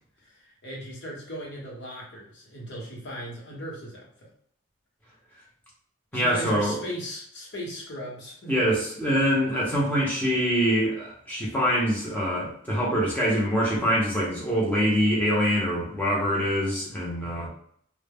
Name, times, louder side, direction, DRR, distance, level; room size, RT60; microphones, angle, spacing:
voice 1, 0.2-4.3 6.1-8.5 17.2-17.5, equal, 55° left, -3 dB, 0.9 m, -38 dB
voice 2, 6.1-6.8 8.5-17.5, equal, 10° left, -5 dB, 0.6 m, -24 dB
2.1 x 2.0 x 3.4 m, 0.64 s
head